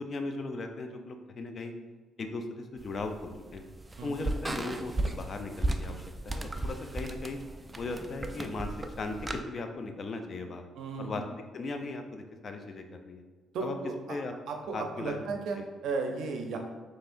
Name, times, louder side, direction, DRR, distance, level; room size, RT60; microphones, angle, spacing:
voice 1, 0.0-1.7 2.2-3.7 4.0-7.4 7.8-10.7 11.0-11.2 11.5-13.2 13.6-13.7 14.1-14.3 14.7-15.3 15.6-15.7, left 3 dB, 50° left, 5 dB, 0.5 m, -38 dB
sound 1, 2.8-9.4, right 1 dB, 20° right, 0.4 m, -36 dB
voice 2, 10.7-11.2 13.5-14.2 14.5-15.6 15.8-16.6, right 4 dB, 80° right, 3 dB, 0.6 m, -34 dB
5.5 x 3.2 x 2.5 m, 1.3 s
cardioid pair, 90°, 0 cm